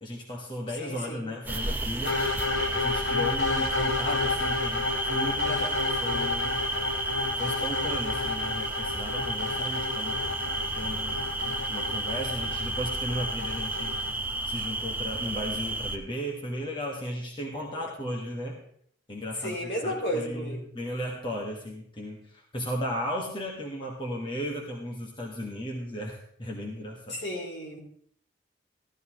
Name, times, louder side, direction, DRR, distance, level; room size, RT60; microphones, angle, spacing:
voice 1, 0.0-2.2 2.5-6.6 7.4-10.2 10.7-14.1 14.5-18.6 19.1-27.2, equal, 25° left, -1 dB, 1.5 m, -35 dB
voice 2, 0.7-1.2 17.6-17.9 19.4-20.7 27.1-27.8, equal, 60° left, 0 dB, 2.6 m, -33 dB
sound 1, 1.5-16.0, right 2 dB, 10° right, 0.7 m, -32 dB
sound 2, 2.0-14.1, left 3 dB, 90° left, 1.1 m, -31 dB
14.5 x 12.0 x 3.0 m, 0.65 s
head